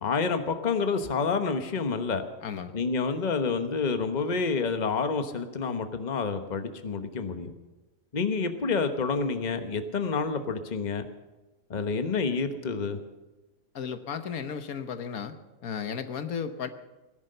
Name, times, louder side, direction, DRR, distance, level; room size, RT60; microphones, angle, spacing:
voice 1, 0.0-2.2 2.7-7.5 8.1-11.0 11.7-13.0, left 4 dB, 35° left, 8 dB, 1.2 m, -28 dB
voice 2, 2.4-2.7 13.7-15.3 15.6-16.7, left 7 dB, 75° left, 10 dB, 1.5 m, -34 dB
18.0 x 11.5 x 6.7 m, 1.1 s
omnidirectional pair, 1.5 m